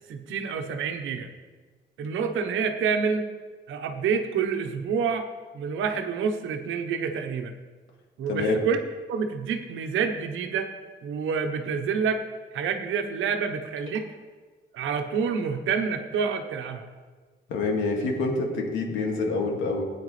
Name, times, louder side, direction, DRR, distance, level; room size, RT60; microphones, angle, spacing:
voice 1, 0.1-1.3 2.0-3.3 3.7-5.3 5.5-7.5 8.2-8.8 9.1-10.7 11.0-12.2 12.5-14.1 14.7-16.9, right 6 dB, 85° right, 7 dB, 1.1 m, -28 dB
voice 2, 17.5-19.8, left 3 dB, 90° left, 0 dB, 2.2 m, -26 dB
16.5 x 9.4 x 3.3 m, 1.4 s
cardioid pair, 140°, 20 cm